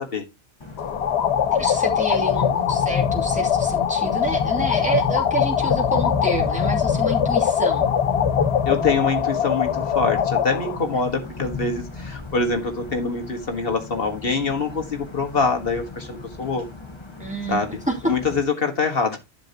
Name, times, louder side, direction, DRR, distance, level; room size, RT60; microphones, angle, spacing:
sound 1, 0.6-18.4, left 4 dB, 25° left, 1.6 m, -31 dB
sound 2, 0.8-10.8, left 9 dB, 90° left, 1.1 m, -22 dB
voice 1, 1.5-7.9 10.9-11.1 17.2-17.6 17.9-18.1, right 1 dB, 5° right, 0 dB, 2.9 m, -28 dB
voice 2, 8.7-16.7 17.5-17.8 18.1-19.2, left 4 dB, 65° left, 4 dB, 1.8 m, -24 dB
11.5 x 7.1 x 2.9 m, 0.22 s
omnidirectional pair, 1.1 m